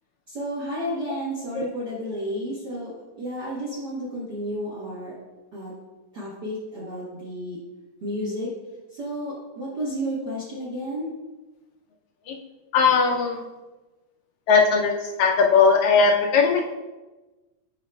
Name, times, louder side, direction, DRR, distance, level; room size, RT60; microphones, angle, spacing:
voice 1, 0.3-2.9 3.2-5.1 5.5-5.7 6.1-7.6 8.0-8.5 8.9-11.1, equal, 50° right, -7 dB, 1.3 m, -31 dB
voice 2, 12.7-13.4 14.5-14.9 15.2-16.7, left 5 dB, 80° left, 1 dB, 1.8 m, -19 dB
10.5 x 4.7 x 2.3 m, 1.1 s
omnidirectional pair, 3.5 m